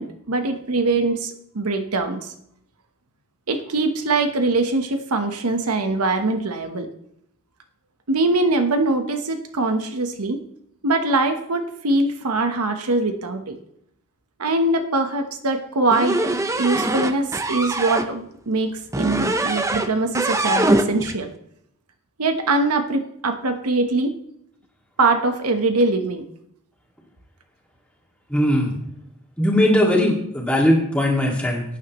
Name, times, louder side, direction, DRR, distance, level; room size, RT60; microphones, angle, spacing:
voice 1, 0.0-2.3 3.5-6.9 8.1-10.4 10.8-13.6 14.4-16.3 16.6-21.3 22.2-24.1 25.0-26.2, right 2 dB, 90° right, 7 dB, 1.1 m, -22 dB
sound 1, 15.9-18.1 18.9-19.9 20.1-21.2, right 2 dB, 15° right, 0.6 m, -22 dB
voice 2, 28.3-28.7 29.4-31.6, left 1 dB, 5° left, -2 dB, 2.1 m, -19 dB
17.5 x 9.4 x 3.1 m, 0.73 s
head